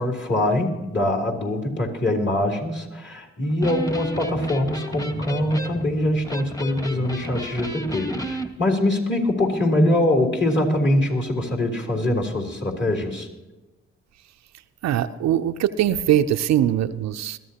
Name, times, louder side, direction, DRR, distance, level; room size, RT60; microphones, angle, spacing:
voice 1, 0.0-13.3, left 1 dB, 40° left, 0 dB, 3.6 m, -23 dB
Electric guitar, 3.5-8.5, equal, 10° left, 1.5 m, -33 dB
voice 2, 14.8-17.4, right 11 dB, 65° right, 11 dB, 0.6 m, -21 dB
21.5 x 13.5 x 2.9 m, 1.1 s
hypercardioid pair, 45°, 29 cm